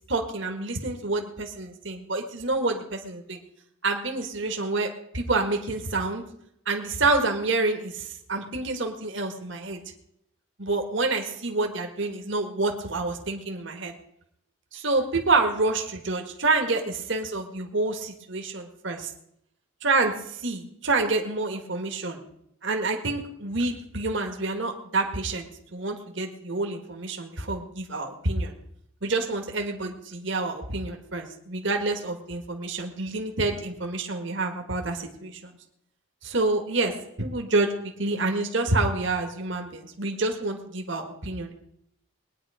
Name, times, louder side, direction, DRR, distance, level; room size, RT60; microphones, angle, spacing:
voice 1, 0.1-3.4 3.8-6.2 6.7-9.8 10.6-13.9 14.7-19.1 19.8-22.2 22.6-28.5 29.0-35.6 36.2-37.7 38.0-41.5, right 3 dB, 60° right, 3 dB, 1.8 m, -28 dB
21.0 x 9.8 x 5.0 m, 0.76 s
head